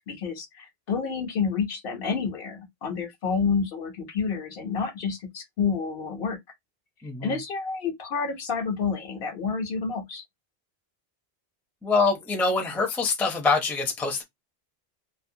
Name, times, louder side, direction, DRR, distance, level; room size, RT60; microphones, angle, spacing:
voice 1, 0.1-6.4 7.2-10.2, left 5 dB, 70° left, 0.8 m, -29 dB
voice 2, 7.0-7.4 11.8-14.2, left 4 dB, ahead, 0.4 m, -25 dB
2.4 x 2.0 x 2.6 m
omnidirectional pair, 1.0 m